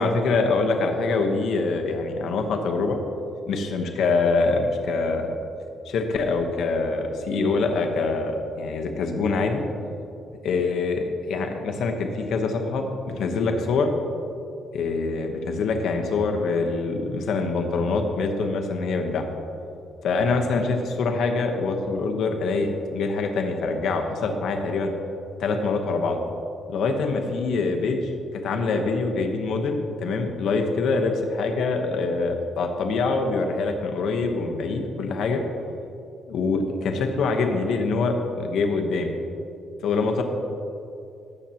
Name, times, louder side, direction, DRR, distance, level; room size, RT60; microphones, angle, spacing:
voice 1, 0.0-3.0 3.5-5.3 5.8-9.6 10.4-13.9 14.7-19.3 20.0-24.9 25.4-26.2 26.7-28.1 28.4-35.4 36.3-39.2 39.8-40.2, left 3 dB, 65° left, 4 dB, 1.0 m, -24 dB
18.5 x 7.6 x 2.9 m, 2.6 s
cardioid pair, 140°, 0 cm